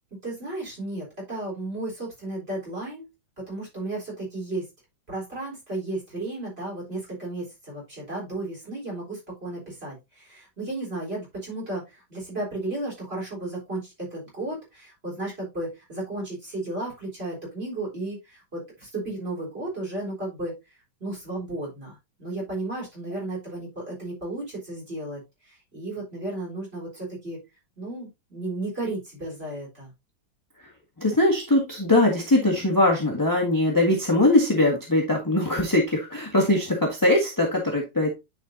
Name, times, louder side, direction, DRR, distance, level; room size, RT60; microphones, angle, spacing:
voice 1, 0.2-3.1 3.5-4.7 5.1-20.5 21.0-27.4 27.8-29.9, right 2 dB, 30° right, -3 dB, 4.2 m, -34 dB
voice 2, 31.0-38.1, left 1 dB, 10° left, 0 dB, 1.4 m, -21 dB
10.0 x 5.0 x 2.7 m, 0.22 s
omnidirectional pair, 2.1 m